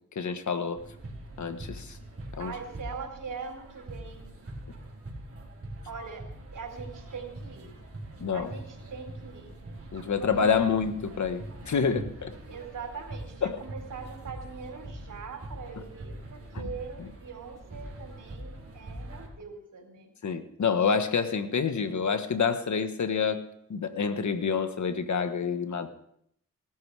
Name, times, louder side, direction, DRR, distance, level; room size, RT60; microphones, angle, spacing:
voice 1, 0.1-0.8 1.4-2.0 2.4-2.5 8.2-8.5 9.9-12.3 13.4-13.6 20.2-23.4 23.7-25.9, left 6 dB, 65° left, 8 dB, 1.5 m, -27 dB
sound 1, 0.8-19.3, right 1 dB, 45° right, 4.0 m, -43 dB
voice 2, 2.4-4.3 5.9-6.2 6.5-7.7 8.3-9.6 10.1-10.8 12.5-20.1, right 5 dB, 75° right, 2 dB, 4.1 m, -42 dB
18.5 x 13.5 x 4.8 m, 0.71 s
cardioid pair, 65°, 31 cm